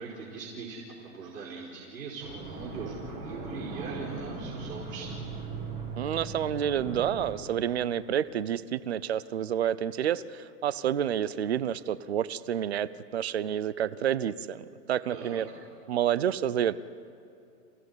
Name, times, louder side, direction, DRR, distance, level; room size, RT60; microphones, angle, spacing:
voice 1, 0.0-5.1 15.1-15.4, right 4 dB, 75° right, -3 dB, 5.0 m, -41 dB
sound 1, 2.2-7.4, right 3 dB, 15° right, 1.7 m, -39 dB
voice 2, 6.0-15.5 15.9-16.9, right 10 dB, 40° right, 18 dB, 0.6 m, -29 dB
29.0 x 17.0 x 9.6 m, 2.5 s
hypercardioid pair, 175°, 48 cm